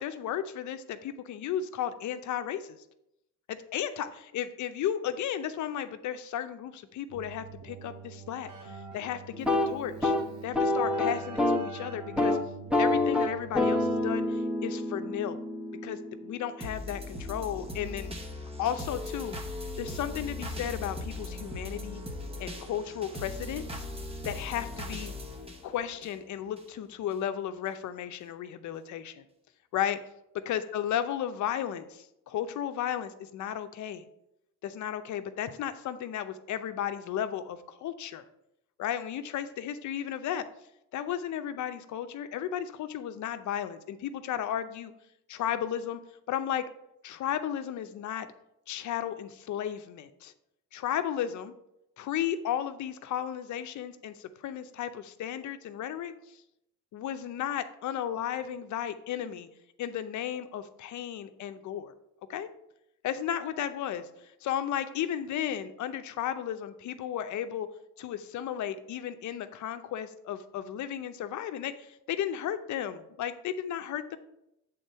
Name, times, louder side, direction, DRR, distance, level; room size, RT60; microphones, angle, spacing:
voice 1, 0.0-2.8 3.5-10.1 10.4-12.4 12.8-15.4 15.8-18.1 18.6-19.4 19.8-22.0 22.4-23.8 24.2-25.1 25.6-29.2 29.7-30.0 30.4-34.0 34.6-38.3 38.8-40.5 40.9-44.9 45.3-46.0 46.3-46.6 47.0-48.3 48.7-50.3 50.7-51.5 52.0-56.1 56.9-59.5 59.8-61.9 62.3-62.5 63.0-67.7 68.0-74.2, left 10 dB, 70° left, 10 dB, 0.7 m, -34 dB
Keyboard (musical), 7.1-14.4, right 5 dB, 70° right, 1.6 m, -45 dB
sound 1, 9.3-11.7 12.0-12.4 12.7-16.6, left 2 dB, 5° right, 1.2 m, -28 dB
sound 2, 16.6-26.6 27.1-27.2, left 2 dB, 20° right, 1.3 m, -39 dB
7.9 x 3.8 x 5.5 m, 0.83 s
cardioid pair, 90°, 30 cm